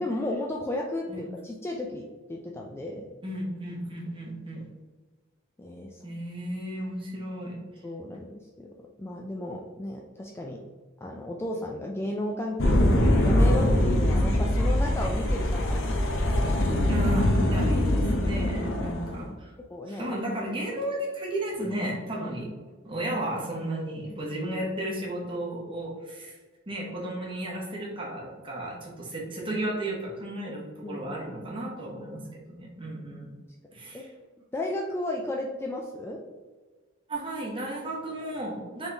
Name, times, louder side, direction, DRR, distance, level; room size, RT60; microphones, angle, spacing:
voice 1, 0.0-3.1 5.6-6.0 7.8-10.6 11.0-12.8 13.2-15.8 19.7-20.2 22.4-22.5 30.4-30.5 30.8-31.2 33.9-34.0 34.5-36.2, left 1 dB, 10° left, 0 dB, 0.3 m, -34 dB
voice 2, 3.2-4.6 6.0-7.6 16.9-19.5 19.9-22.5 22.8-26.4 26.7-33.3 33.7-34.1 37.1-38.9, right 1 dB, 25° right, -3 dB, 1.1 m, -34 dB
sound 1, 12.6-19.2, left 1 dB, 65° left, 0.8 m, -23 dB
4.0 x 3.5 x 3.4 m, 1.4 s
head